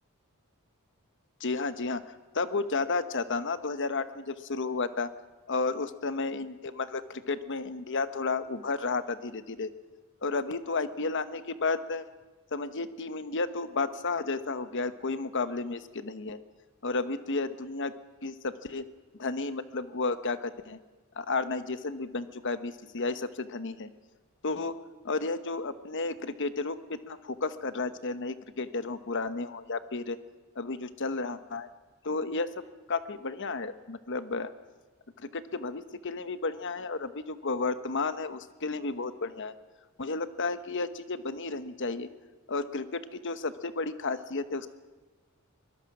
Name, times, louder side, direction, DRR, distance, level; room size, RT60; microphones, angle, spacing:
voice 1, 1.4-2.0 2.3-5.1 5.5-9.7 10.2-12.1 12.5-16.4 16.8-17.9 18.2-18.8 19.2-20.8 21.2-23.9 24.4-24.7 25.0-30.2 30.6-31.7 32.0-32.5 32.9-34.5 35.2-39.5 40.0-42.1 42.5-44.7, left 3 dB, 60° left, 11 dB, 1.1 m, -32 dB
23.0 x 20.5 x 6.1 m, 1.2 s
head